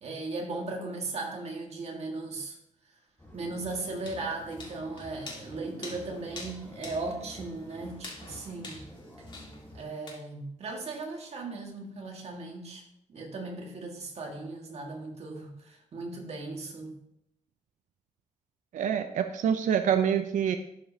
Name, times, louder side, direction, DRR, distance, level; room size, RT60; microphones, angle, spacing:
voice 1, 0.0-2.6 3.3-8.8 9.7-12.8 13.1-16.9, right 3 dB, 55° right, 1 dB, 1.6 m, -37 dB
sound 1, 3.2-9.8, equal, 15° left, 1.3 m, -48 dB
sound 2, 3.7-10.1, left 3 dB, 40° left, 1.9 m, -47 dB
voice 2, 18.7-20.6, right 8 dB, 80° right, 8 dB, 0.4 m, -26 dB
12.0 x 5.0 x 2.7 m, 0.79 s
wide cardioid pair, 150°, 13 cm